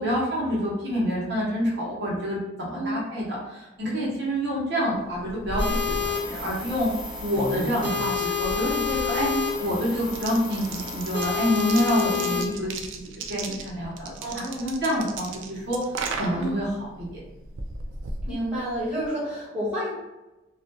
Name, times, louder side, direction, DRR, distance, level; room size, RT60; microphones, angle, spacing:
voice 1, 0.0-5.6 6.0-6.9 7.2-9.3 9.6-15.8 16.1-17.2, equal, 60° right, -6 dB, 0.9 m, -27 dB
voice 2, 3.8-4.1 9.2-9.5 12.1-12.3 14.2-14.7 16.3-16.6 18.2-19.9, equal, 5° right, -11 dB, 1.1 m, -30 dB
sound 1, 5.0-19.1, right 2 dB, 85° right, 0.3 m, -36 dB
sound 2, 5.6-12.4, left 6 dB, 20° right, 0.6 m, -29 dB
2.4 x 2.2 x 2.6 m, 1.0 s
head